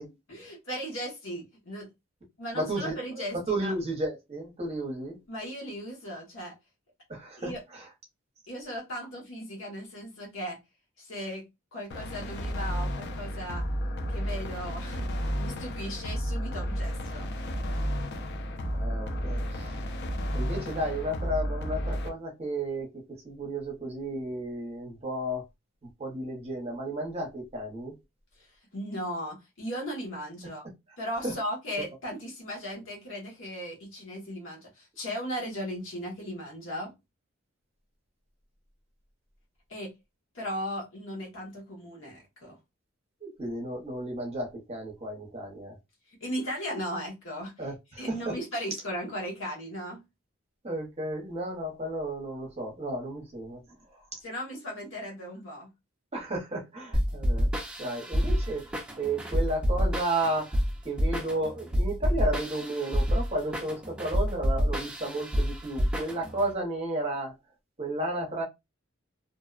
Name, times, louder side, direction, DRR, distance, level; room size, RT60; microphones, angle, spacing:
voice 1, 0.3-1.9 2.4-3.7 5.3-6.5 7.4-7.6 8.5-10.6 11.0-13.6 14.1-15.1 15.4-17.3 28.4-28.5 28.7-30.7 31.0-36.9 39.7-39.9 40.3-42.6 46.2-47.5 48.0-50.0 54.2-55.7, equal, 70° left, 1.2 m, -37 dB
voice 2, 2.5-5.2 7.1-7.8 18.7-19.9 20.3-25.4 26.0-27.9 31.2-31.3 43.2-45.7 47.6-48.4 50.6-53.6 53.9-54.0 56.1-57.5 57.8-60.6 60.8-67.3 67.8-68.4, right 1 dB, 30° right, 0.8 m, -33 dB
sound 1, 11.9-22.1, equal, 55° left, 0.4 m, -32 dB
sound 2, 56.9-66.5, equal, 5° right, 0.4 m, -28 dB
2.5 x 2.1 x 2.4 m
head